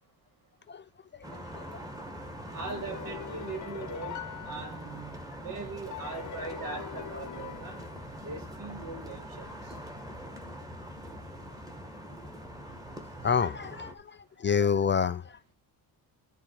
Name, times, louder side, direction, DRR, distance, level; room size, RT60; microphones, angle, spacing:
sound 1, 1.2-13.9, equal, 10° right, 2.1 m, -43 dB
voice 1, 1.3-1.8 13.2-15.4, left 6 dB, 30° left, 0.6 m, -28 dB
voice 2, 2.5-7.8 8.2-9.8, right 4 dB, 60° right, 6.1 m, -40 dB
sound 2, 2.7-5.3 5.9-8.4, left 10 dB, 50° left, 1.1 m, -43 dB
12.0 x 4.6 x 4.8 m
cardioid pair, 145°, 38 cm